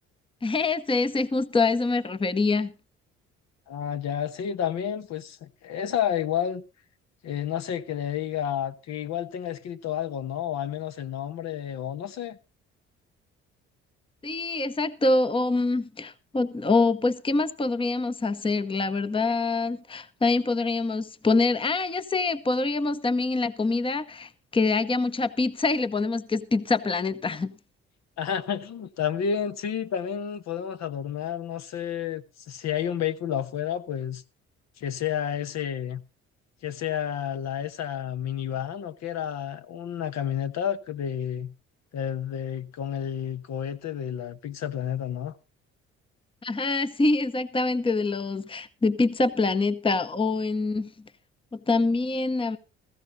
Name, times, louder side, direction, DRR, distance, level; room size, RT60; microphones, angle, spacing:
voice 1, 0.4-2.7 14.2-27.5 46.4-50.9 51.5-52.6, left 3 dB, 15° left, 0.9 m, -25 dB
voice 2, 3.7-6.6 7.2-12.4 28.2-34.2 34.8-36.0 36.6-41.5 41.9-45.3, left 9 dB, 55° left, 1.0 m, -30 dB
15.5 x 15.0 x 2.7 m
hypercardioid pair, 55°, 32 cm